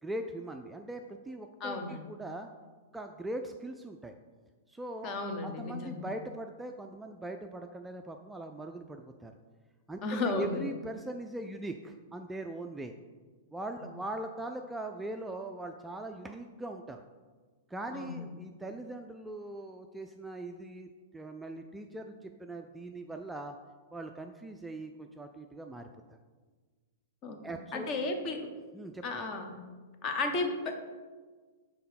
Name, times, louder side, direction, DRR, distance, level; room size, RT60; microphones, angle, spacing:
voice 1, 0.0-2.5 2.9-4.2 4.7-9.3 9.9-10.0 10.3-12.9 13.5-17.0 17.7-23.6 23.9-25.9 27.4-28.0 28.7-29.2, right 1 dB, 10° right, 4 dB, 0.3 m, -41 dB
voice 2, 1.6-2.0 5.0-6.0 10.0-10.6 17.9-18.3 27.2-28.5 29.0-29.6 30.0-30.7, left 3 dB, 35° left, 5 dB, 0.9 m, -34 dB
5.6 x 3.6 x 5.7 m, 1.4 s
figure-of-eight pair, 105°, 0 cm